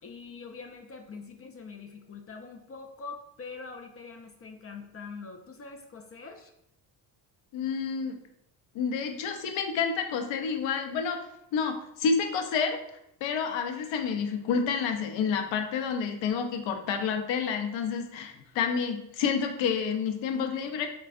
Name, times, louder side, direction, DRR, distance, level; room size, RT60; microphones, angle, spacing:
voice 1, 0.0-6.5 18.3-18.4, left 4 dB, 30° left, 4 dB, 0.4 m, -44 dB
voice 2, 7.5-8.2 8.7-11.2 11.5-12.8 13.2-20.9, left 6 dB, 65° left, 5 dB, 0.7 m, -29 dB
4.0 x 2.3 x 2.3 m, 0.79 s
supercardioid pair, 60°, 49 cm